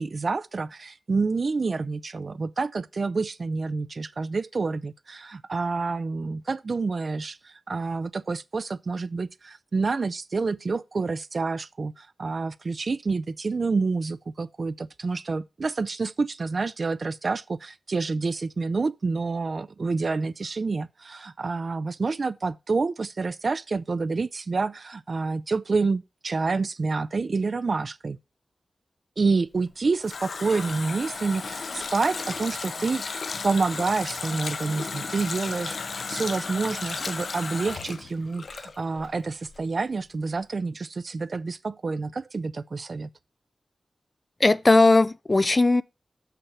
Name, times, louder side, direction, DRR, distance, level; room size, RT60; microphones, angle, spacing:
voice 1, 0.0-28.2 29.2-43.1, right 4 dB, 45° right, 0.5 m, -28 dB
Water tap faucet, 29.6-39.2 39.5-39.6, left 4 dB, 60° left, 0.7 m, -34 dB
voice 2, 44.4-45.8, left 2 dB, 25° left, 0.4 m, -18 dB
7.0 x 5.8 x 6.5 m
wide cardioid pair, 140°, 0 cm